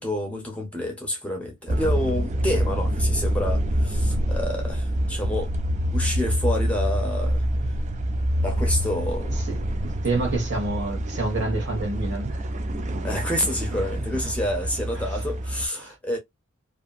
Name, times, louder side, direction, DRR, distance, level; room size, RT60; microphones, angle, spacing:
voice 1, 0.0-5.5 5.9-7.4 8.3-9.4 13.0-16.2, left 1 dB, 5° left, 0.7 m, -28 dB
sound 1, 1.7-15.7, equal, 35° right, 0.3 m, -26 dB
voice 2, 9.5-12.5 14.0-14.1 14.9-15.2 15.8-16.0, right 2 dB, 55° right, 1.3 m, -28 dB
2.7 x 2.5 x 2.3 m
head